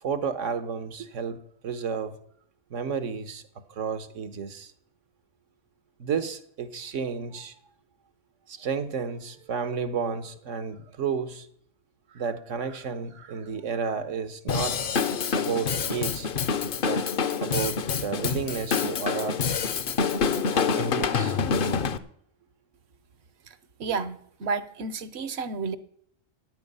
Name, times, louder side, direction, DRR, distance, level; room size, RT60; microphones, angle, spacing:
voice 1, 0.0-2.2 2.7-3.4 3.7-4.7 6.0-7.5 8.5-11.5 12.1-14.8 15.3-16.3 16.8-17.1 17.4-19.4 20.5-21.4 23.9-24.0, right 6 dB, 75° right, 12 dB, 1.4 m, -32 dB
Drum kit / Drum, 14.5-22.0, left 6 dB, 50° left, 0.8 m, -26 dB
voice 2, 23.5-25.8, right 4 dB, 60° right, 15 dB, 1.1 m, -32 dB
14.5 x 10.0 x 5.5 m, 0.66 s
omnidirectional pair, 1.3 m